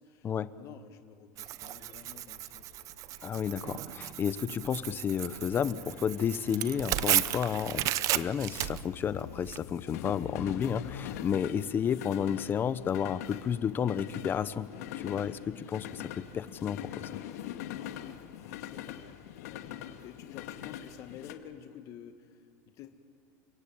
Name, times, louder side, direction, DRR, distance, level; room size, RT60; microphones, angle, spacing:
voice 1, 0.0-0.3 0.6-2.7 17.9-22.4 22.7-23.0, left 9 dB, 40° left, 6 dB, 1.8 m, -50 dB
Tearing, 1.4-9.6, right 14 dB, 40° right, 0.7 m, -34 dB
sound 1, 1.8-21.3, left 11 dB, 80° left, 2.1 m, -44 dB
voice 2, 3.2-7.9 8.2-14.7 14.9-17.1, left 8 dB, 25° left, 15 dB, 0.9 m, -31 dB
29.5 x 23.0 x 8.8 m, 2.1 s
supercardioid pair, 140°, 8 cm